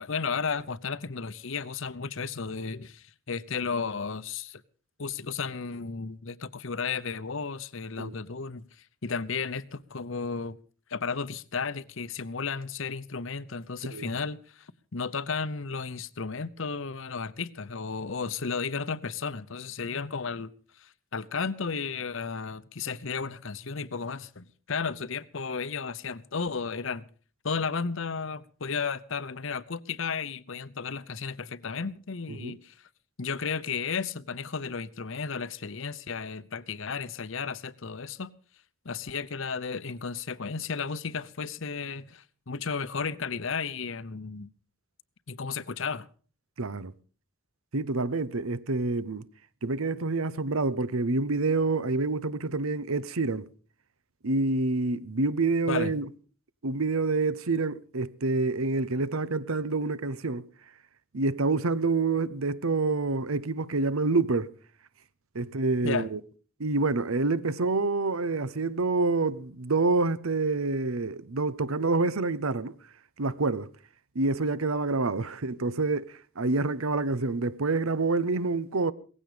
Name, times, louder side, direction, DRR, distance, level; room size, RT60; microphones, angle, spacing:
voice 1, 0.0-4.6 5.0-8.6 9.0-10.6 10.9-20.5 20.8-27.0 27.4-32.7 33.2-38.3 38.8-44.5 45.3-46.1 55.7-55.9 65.8-66.1, left 5 dB, 65° left, 0.8 m, -33 dB
voice 2, 46.6-46.9 47.7-49.3 49.6-53.5 54.2-56.1 56.6-60.5 61.1-64.5 65.3-66.2 66.6-72.7 73.2-73.7 74.1-78.9, right 3 dB, 85° right, 0.9 m, -27 dB
18.0 x 15.5 x 5.1 m
head